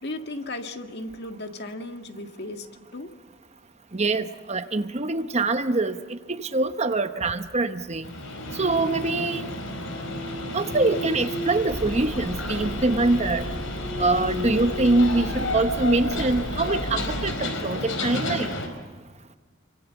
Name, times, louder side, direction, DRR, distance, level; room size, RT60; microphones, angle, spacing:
voice 1, 0.0-2.7 2.9-3.1 14.0-14.1, left 2 dB, 55° left, 5 dB, 1.9 m, -35 dB
voice 2, 3.9-8.1 8.6-9.5 10.5-13.5 14.0-18.5, right 2 dB, 35° right, 9 dB, 0.9 m, -24 dB
sound 1, 8.0-18.7, left 1 dB, 70° left, 5.1 m, -31 dB
Aircraft, 11.7-17.3, equal, 5° right, 1.0 m, -36 dB
27.5 x 25.0 x 7.2 m, 1.4 s
head